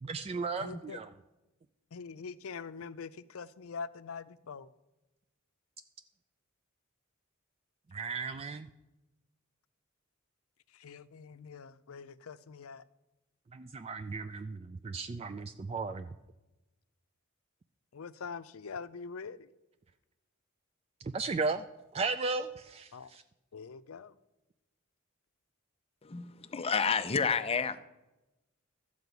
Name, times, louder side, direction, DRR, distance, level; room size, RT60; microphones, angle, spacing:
voice 1, 0.0-1.1 7.9-8.7 13.5-16.1 21.0-21.7 21.9-23.2, right 4 dB, 30° right, 0.3 m, -35 dB
voice 2, 0.6-1.0 1.9-4.7 10.7-12.8 17.9-19.5 22.9-23.1 23.5-24.1, left 5 dB, 90° left, 0.5 m, -44 dB
voice 3, 26.0-27.8, left 5 dB, 30° left, 0.6 m, -30 dB
12.5 x 4.9 x 8.1 m
head